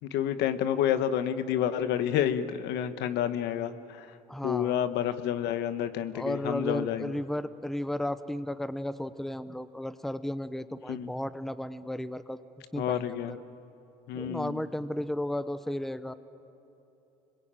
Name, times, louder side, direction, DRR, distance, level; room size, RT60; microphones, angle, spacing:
voice 1, 0.0-4.1 4.4-7.1 10.9-11.1 12.7-13.4 14.1-14.6, left 10 dB, 85° left, 11 dB, 1.2 m, -29 dB
voice 2, 4.3-4.7 6.1-12.4 12.7-13.4 14.1-16.1, left 1 dB, ahead, 13 dB, 0.8 m, -34 dB
26.0 x 21.5 x 9.0 m, 3.0 s
cardioid pair, 110°, 17 cm